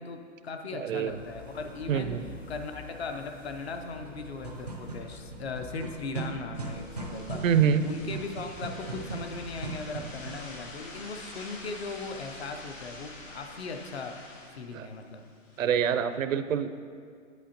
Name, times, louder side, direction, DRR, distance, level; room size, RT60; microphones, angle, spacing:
voice 1, 0.0-2.1 2.5-7.4 7.8-14.2 14.5-15.2, left 4 dB, 55° left, 6 dB, 0.7 m, -38 dB
voice 2, 0.7-1.2 1.9-2.2 7.4-7.9 14.7-14.9 15.6-16.8, right 8 dB, 85° right, 11 dB, 0.6 m, -26 dB
sound 1, 0.9-14.8, left 2 dB, 15° left, 0.5 m, -49 dB
sound 2, 4.4-10.5, right 3 dB, 35° right, 0.4 m, -39 dB
sound 3, 6.5-15.6, left 2 dB, 75° left, 1.9 m, -47 dB
9.4 x 8.1 x 2.9 m, 2.1 s
hypercardioid pair, 170°, 38 cm